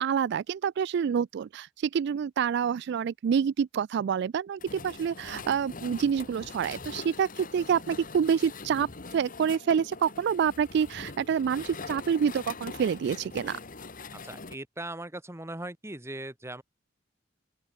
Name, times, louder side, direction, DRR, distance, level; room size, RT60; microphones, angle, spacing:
voice 1, 0.0-8.9 9.1-13.6, right 7 dB, 60° right, 0.3 m, -27 dB
sound 1, 4.6-14.6, left 4 dB, 45° left, 1.7 m, -43 dB
voice 2, 14.2-16.6, right 1 dB, 15° right, 1.8 m, -39 dB
open air
head